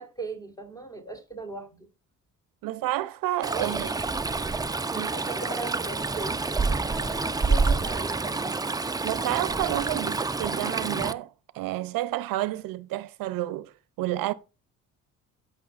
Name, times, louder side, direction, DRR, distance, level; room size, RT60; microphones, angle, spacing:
voice 1, 0.0-1.9 3.5-8.6, right 2 dB, 10° left, 3.5 m, -39 dB
voice 2, 2.6-3.9 4.9-5.1 9.0-13.7 14.0-14.3, right 15 dB, 80° right, 0.6 m, -30 dB
Stream, 3.4-11.1, right 3 dB, 10° right, 0.5 m, -28 dB
14.5 x 6.2 x 2.4 m
cardioid pair, 85°, 34 cm